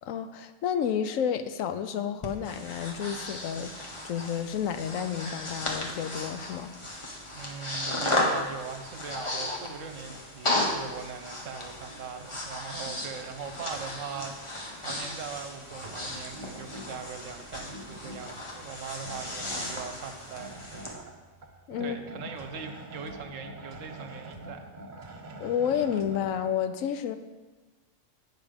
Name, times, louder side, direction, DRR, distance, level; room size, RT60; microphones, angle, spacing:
voice 1, 0.0-3.7 4.0-6.7 21.7-22.0 25.4-27.2, left 8 dB, 90° left, 10 dB, 1.0 m, -30 dB
Breathing, 2.2-20.9, left 1 dB, 25° left, 1.1 m, -35 dB
voice 2, 7.3-21.0 21.8-24.7, right 6 dB, 75° right, 7 dB, 1.2 m, -40 dB
sound 1, 15.8-26.5, right 1 dB, 40° right, 0.9 m, -46 dB
9.3 x 6.2 x 5.2 m, 1.2 s
omnidirectional pair, 1.4 m